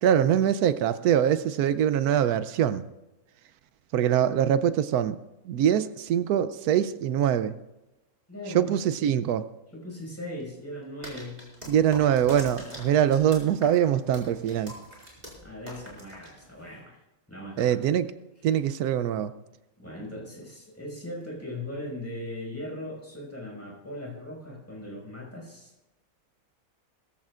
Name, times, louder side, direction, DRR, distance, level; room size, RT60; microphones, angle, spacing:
voice 1, 0.0-2.8 3.9-5.2 5.5-7.5 8.5-9.5 11.7-14.8 17.6-18.1 18.4-19.3, right 9 dB, 85° right, 12 dB, 1.1 m, -23 dB
voice 2, 8.3-8.7 9.7-11.4 15.4-17.0 17.3-17.8 19.8-25.7, left 1 dB, 10° left, -3 dB, 5.6 m, -39 dB
Clock, 9.9-10.0 10.4-11.9 12.1-12.2 12.5-13.1 13.5-15.1, equal, 40° right, 6.4 m, -55 dB
sound 1, 11.0-16.8, equal, 25° right, 4.7 m, -43 dB
21.0 x 14.5 x 2.5 m, 0.97 s
omnidirectional pair, 1.6 m